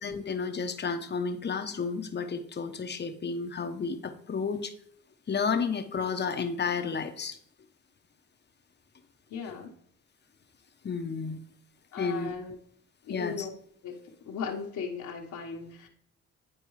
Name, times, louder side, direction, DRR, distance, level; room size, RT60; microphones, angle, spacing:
voice 1, 0.0-4.7 5.3-7.4 10.8-11.4 12.0-12.3 13.1-13.5, left 5 dB, 35° left, 7 dB, 0.9 m, -31 dB
voice 2, 9.3-9.7 11.9-12.5 13.0-13.5 13.8-14.0 14.2-15.9, left 6 dB, 75° left, 0 dB, 1.3 m, -37 dB
10.0 x 4.5 x 3.1 m, 0.65 s
cardioid pair, 90°, 30 cm